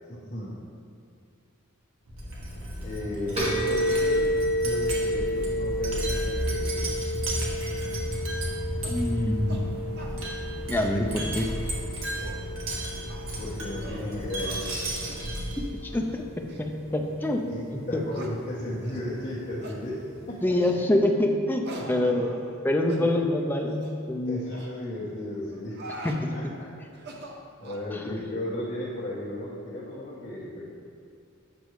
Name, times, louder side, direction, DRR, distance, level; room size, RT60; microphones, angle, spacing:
voice 1, 0.1-0.6 2.8-4.3 4.6-7.0 13.4-14.9 17.5-20.6 21.7-22.2 22.9-23.1 24.3-25.8 26.3-26.7 27.6-30.7, left 1 dB, 35° left, -11 dB, 1.3 m, -35 dB
Wind chime, 2.1-15.8, right 1 dB, 80° right, 1.5 m, -33 dB
sound 1, 3.4-20.7, equal, 30° right, 1.3 m, -33 dB
sound 2, 8.8-9.0 9.5-9.6 10.0-10.2 10.6-11.0 11.3-11.4 11.9-12.4 13.1-13.4 13.8-14.1 14.4-14.6 15.0-15.2 15.8-16.0 16.5-16.6 17.2-17.3 18.1-18.3 18.8-19.1 19.6-19.8 20.6-20.8 21.6-22.6 22.9-23.0 23.7-23.9 24.5-24.7 25.5-26.2 26.9-27.9, right 1 dB, 55° right, 0.7 m, -43 dB
voice 2, 8.9-9.8 10.7-11.5 15.6-16.2 16.6-17.4 17.9-18.0 20.4-22.3 22.6-24.4 26.0-26.5, left 1 dB, 10° left, 2 dB, 0.4 m, -26 dB
8.3 x 6.2 x 3.1 m, 2.4 s
head